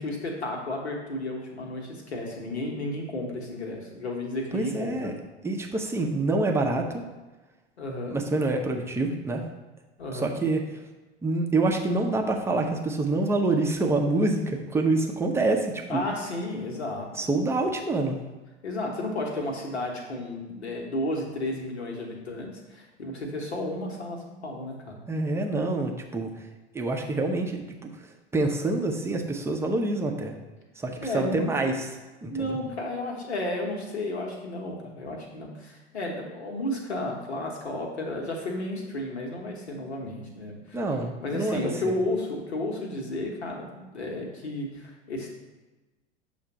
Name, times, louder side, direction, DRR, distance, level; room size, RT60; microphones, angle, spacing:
voice 1, 0.0-5.1 7.8-8.2 10.0-10.3 15.9-17.3 18.6-25.0 31.0-31.8 32.3-40.8 41.2-45.3, left 1 dB, 75° left, 0 dB, 1.2 m, -33 dB
voice 2, 4.5-5.1 5.4-7.0 8.1-9.4 10.1-10.6 11.2-16.0 17.2-18.2 25.1-26.3 26.7-27.9 28.3-30.4 30.8-31.9 32.2-32.6 40.7-41.9, right 2 dB, 10° right, 2 dB, 0.6 m, -26 dB
6.6 x 2.6 x 5.6 m, 1.2 s
figure-of-eight pair, 80°, 33 cm